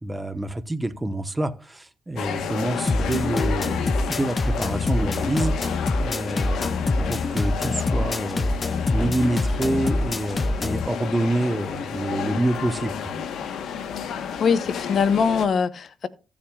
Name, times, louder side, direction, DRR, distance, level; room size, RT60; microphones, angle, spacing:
voice 1, 0.0-8.6 8.9-13.1, right 1 dB, 15° right, 1.1 m, -27 dB
sound 1, 2.2-15.5, left 7 dB, 80° left, 1.2 m, -31 dB
sound 2, 2.9-10.9, left 2 dB, 30° left, 0.4 m, -25 dB
voice 2, 14.4-16.1, left 6 dB, 55° left, 0.9 m, -22 dB
15.0 x 7.4 x 2.4 m
cardioid pair, 90°, 0 cm